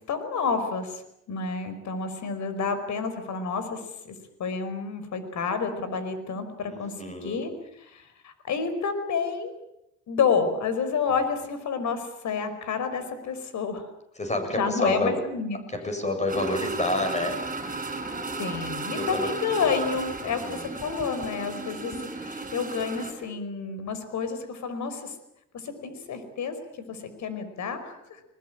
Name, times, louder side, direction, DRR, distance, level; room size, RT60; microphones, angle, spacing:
voice 1, 0.1-1.0 1.3-4.1 4.4-6.9 7.2-7.5 7.9-9.5 10.1-13.9 14.6-15.6 18.4-25.1 25.6-26.5 26.9-28.2, left 5 dB, 70° left, 10 dB, 5.1 m, -29 dB
voice 2, 6.6-7.5 14.2-15.2 15.7-17.4 18.9-19.3 20.2-20.8, left 1 dB, 25° left, 6 dB, 7.7 m, -29 dB
sound 1, 16.3-23.1, right 3 dB, 25° right, 6.7 m, -34 dB
21.5 x 21.0 x 8.9 m, 0.82 s
cardioid pair, 90°, 30 cm